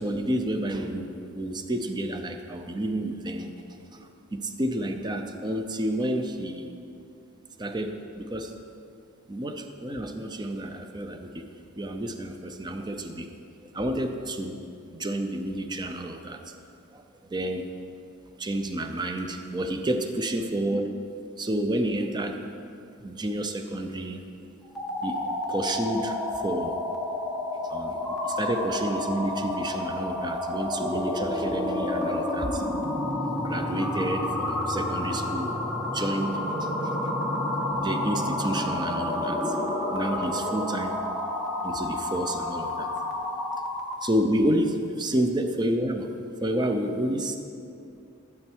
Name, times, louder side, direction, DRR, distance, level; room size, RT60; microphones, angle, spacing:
voice 1, 0.0-3.5 3.9-6.7 7.6-8.5 9.3-11.5 11.8-13.3 13.6-14.6 14.9-16.5 16.9-17.7 18.4-21.0 21.4-22.4 23.0-24.2 25.0-26.8 27.6-32.6 33.4-37.0 37.8-39.6 39.9-40.9 41.6-42.9 44.0-46.1 46.4-47.4, right 1 dB, 20° right, 6 dB, 0.5 m, -30 dB
sound 1, 24.6-44.1, left 1 dB, ahead, 1.2 m, -30 dB
13.0 x 7.7 x 4.6 m, 2.6 s
head